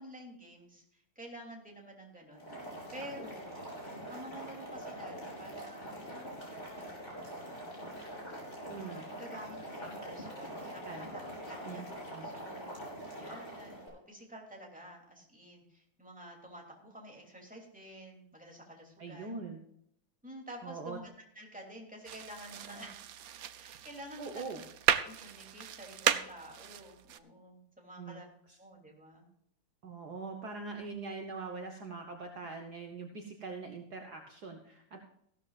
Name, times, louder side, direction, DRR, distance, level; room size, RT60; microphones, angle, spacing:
voice 1, 0.0-2.5 2.9-6.0 8.7-11.8 12.2-12.8 13.1-19.4 20.2-23.2 23.6-24.6 25.0-28.3 28.6-29.3, equal, 5° right, -1 dB, 2.8 m, -50 dB
Boiling, 2.3-13.9, equal, 25° left, 4.9 m, -44 dB
voice 2, 8.7-9.1 10.6-11.1 11.6-12.3 19.0-19.6 20.6-21.0 24.2-24.6 28.0-28.2 28.5-28.6 29.8-35.0, right 4 dB, 55° right, 3 dB, 1.6 m, -43 dB
sound 1, 22.0-27.2, right 10 dB, 75° right, 0.8 m, -35 dB
15.5 x 13.0 x 2.5 m, 0.74 s
omnidirectional pair, 2.3 m